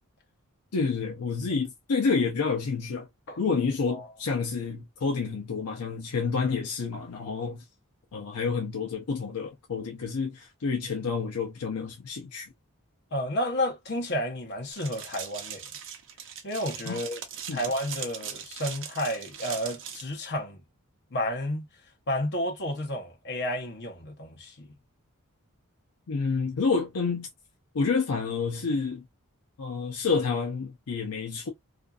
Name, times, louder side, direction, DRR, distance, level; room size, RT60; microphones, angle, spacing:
voice 1, 0.7-3.1 3.4-7.6 8.1-12.5 16.9-17.0 17.5-17.6 26.1-27.3 27.7-29.1 29.6-31.5, left 5 dB, 75° left, 0.6 m, -29 dB
voice 2, 13.1-15.6 16.4-17.2 17.5-20.6 21.1-21.7 22.1-24.7, left 1 dB, 50° left, 0.9 m, -31 dB
sound 1, 14.7-20.0, right 8 dB, 60° right, 0.6 m, -40 dB
2.5 x 2.5 x 2.3 m
head